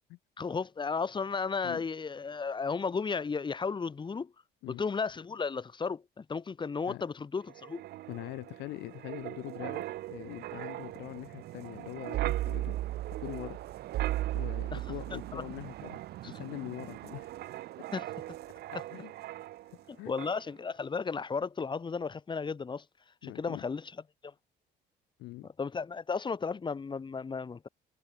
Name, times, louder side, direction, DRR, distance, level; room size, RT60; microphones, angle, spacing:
voice 1, 0.4-4.3 4.7-7.8 14.7-14.8 15.3-15.4 17.9-18.1 20.1-22.8 23.2-23.9 24.2-24.3 25.6-27.7, left 5 dB, 30° left, 3.6 m, -34 dB
Wind, 7.5-19.9 20.2-20.4, right 15 dB, 70° right, 1.7 m, -38 dB
voice 2, 8.1-12.8 13.2-13.6 14.3-17.3 18.7-19.1 19.4-20.1 23.2-23.7 25.2-25.5, left 20 dB, 90° left, 3.6 m, -43 dB
cardioid pair, 110°, 17 cm